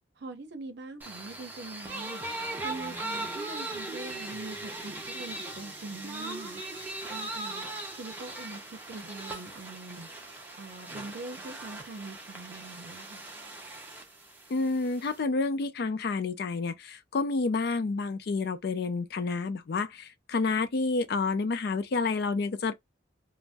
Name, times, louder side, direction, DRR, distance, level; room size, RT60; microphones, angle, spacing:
voice 1, 0.2-2.2 2.6-13.2, right 2 dB, 60° right, 0.6 m, -43 dB
sound 1, 1.0-15.2, right 2 dB, 10° right, 0.6 m, -39 dB
voice 2, 14.5-22.7, left 3 dB, 55° left, 0.4 m, -29 dB
2.6 x 2.0 x 3.3 m
head